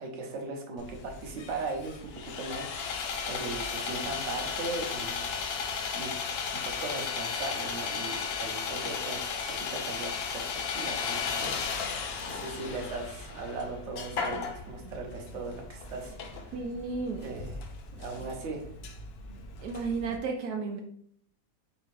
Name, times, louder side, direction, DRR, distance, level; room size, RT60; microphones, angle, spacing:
voice 1, 0.0-1.9 2.2-6.1 6.6-10.5 10.7-16.5 17.2-17.7 17.9-18.7, right 3 dB, 55° right, 1 dB, 1.1 m, -39 dB
Sawing, 0.8-20.2, left 5 dB, 85° left, 0.5 m, -35 dB
voice 2, 16.5-17.2 19.6-20.8, right 4 dB, 75° right, 2 dB, 1.1 m, -33 dB
4.2 x 3.5 x 3.2 m, 0.64 s
omnidirectional pair, 1.7 m